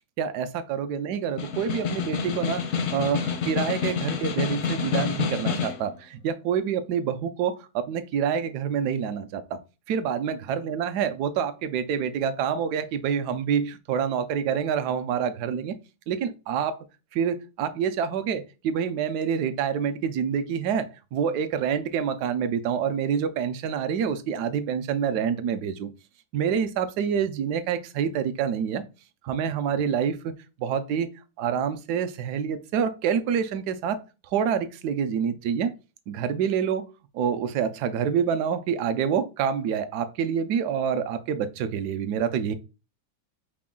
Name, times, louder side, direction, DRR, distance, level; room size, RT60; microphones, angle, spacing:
voice 1, 0.2-2.6 2.9-9.6 9.9-15.8 16.1-16.8 17.1-25.9 26.3-28.8 29.2-30.3 30.6-31.1 31.4-34.0 34.3-35.7 36.1-36.9 37.1-42.5, right 7 dB, 75° right, 1.0 m, -27 dB
Snare drum, 1.2-5.9, left 6 dB, 65° left, 0.8 m, -28 dB
4.9 x 2.2 x 3.6 m
omnidirectional pair, 2.0 m